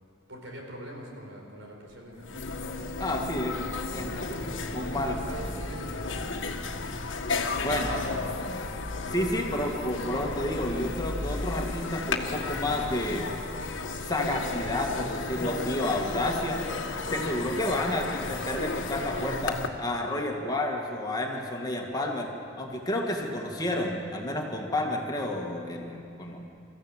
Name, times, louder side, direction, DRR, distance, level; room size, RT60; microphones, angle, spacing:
voice 1, 0.3-2.7 4.1-6.4 7.5-8.5, right 1 dB, 80° right, 0 dB, 4.6 m, -44 dB
sound 1, 1.9-2.0 2.2-19.7, left 3 dB, 75° left, 1.5 m, -33 dB
voice 2, 3.0-4.1 4.7-5.2 7.6-8.3 9.1-13.3 14.0-16.6 17.1-22.3 22.6-26.4, left 1 dB, 20° left, 1 dB, 2.0 m, -30 dB
25.0 x 14.5 x 7.4 m, 2.4 s
head